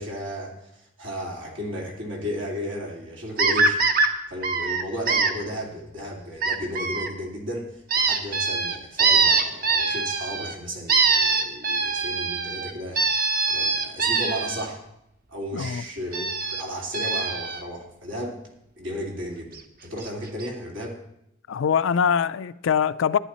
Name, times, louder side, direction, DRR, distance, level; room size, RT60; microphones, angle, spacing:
voice 1, 0.0-13.0 13.5-14.8 15.3-18.5 18.8-21.0, equal, 70° right, 2.3 m, -34 dB
sound 1, 3.4-4.1 4.4-5.3 6.4-7.1 7.9-10.5 10.9-14.7 16.1-16.6 16.9-17.6 19.6-19.7 20.0-20.1 20.4-20.5, right 4 dB, 45° right, 0.8 m, -23 dB
voice 2, 15.5-15.8 21.5-23.2, left 7 dB, 75° left, 0.4 m, -23 dB
11.0 x 9.5 x 4.2 m
head